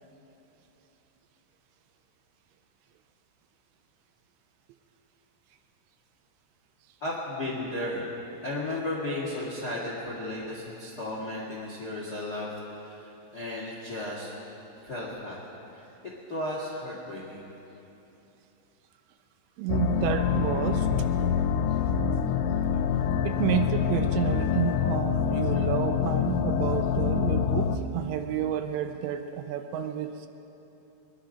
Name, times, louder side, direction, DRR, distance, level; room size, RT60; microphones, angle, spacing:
voice 1, 7.0-8.1 8.4-12.5 12.8-14.3 14.8-15.4 15.7-15.9 16.3-17.5, left 1 dB, 55° left, -4 dB, 1.0 m, -34 dB
voice 2, 19.6-20.9 23.2-30.3, right 10 dB, 80° right, 7 dB, 2.7 m, -30 dB
sound 1, 19.7-27.8, left 8 dB, 90° left, 3.0 m, -26 dB
22.5 x 11.5 x 5.1 m, 3.0 s
omnidirectional pair, 5.4 m